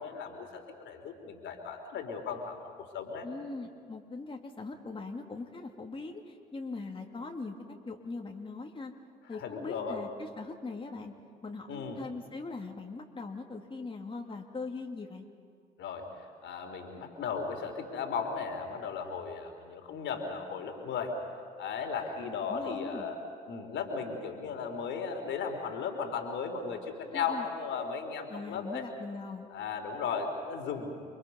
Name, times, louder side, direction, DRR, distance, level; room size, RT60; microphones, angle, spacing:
voice 1, 0.0-2.6 2.9-3.3 9.3-10.0 11.7-12.0 15.8-16.1 16.4-21.1 21.6-23.2 23.5-28.8 29.5-30.9, left 6 dB, 60° left, 4 dB, 3.3 m, -36 dB
voice 2, 3.2-6.2 6.5-7.6 7.9-8.9 9.3-11.1 11.4-15.3 22.2-23.1 27.1-27.5 28.3-29.5, left 3 dB, 25° left, 1 dB, 2.7 m, -41 dB
29.5 x 23.0 x 5.4 m, 2.2 s
hypercardioid pair, 50°, 21 cm